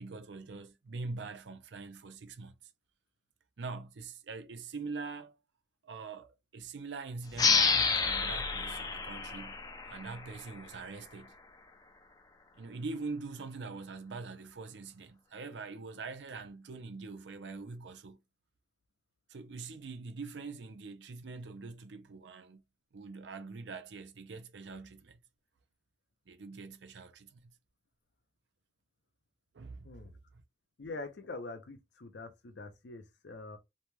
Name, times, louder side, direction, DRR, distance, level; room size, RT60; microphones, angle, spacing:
voice 1, 0.0-2.5 3.6-5.4 5.8-11.3 12.5-18.2 19.3-22.6 22.9-25.2 26.3-27.4 29.5-29.9, right 4 dB, 80° right, 0.5 m, -43 dB
sound 1, 7.3-10.6, left 5 dB, 20° left, 0.4 m, -29 dB
voice 2, 30.8-33.6, left 3 dB, 70° left, 0.6 m, -44 dB
2.7 x 2.2 x 3.1 m
head